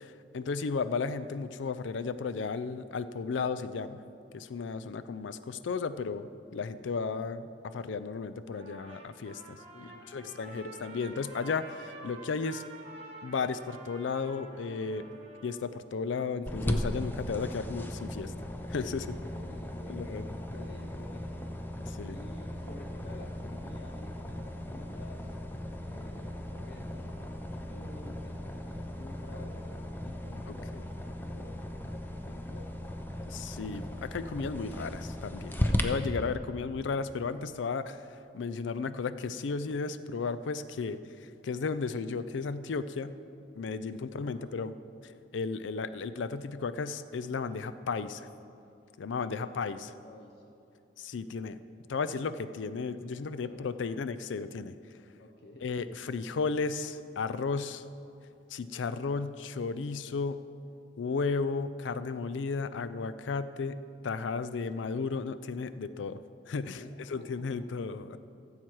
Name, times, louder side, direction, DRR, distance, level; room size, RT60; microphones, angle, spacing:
voice 1, 0.0-4.0 4.3-9.6 10.1-12.6 13.2-15.1 15.4-18.3 18.7-19.2 19.9-20.3 21.9-22.2 30.5-30.6 33.2-38.0 38.3-43.1 43.6-44.7 45.0-48.3 49.0-49.9 51.0-51.6 51.9-54.7 55.6-57.8 58.5-60.4 61.0-63.8 64.0-66.2 66.5-66.8 67.1-68.2, left 4 dB, 85° left, 13 dB, 0.4 m, -34 dB
Trumpet, 8.6-15.7, right 3 dB, 35° right, 1.4 m, -49 dB
voice 2, 9.7-10.7 19.0-21.5 22.1-25.3 25.8-31.6 32.1-32.7 44.3-44.6 45.8-46.0 49.2-49.6 50.0-50.6 53.4-54.0 55.2-55.7 66.7-67.7, left 1 dB, 60° left, 1 dB, 0.8 m, -51 dB
sound 1, 16.5-35.8, left 1 dB, 10° left, 0.5 m, -37 dB
14.5 x 7.4 x 4.7 m, 2.6 s
head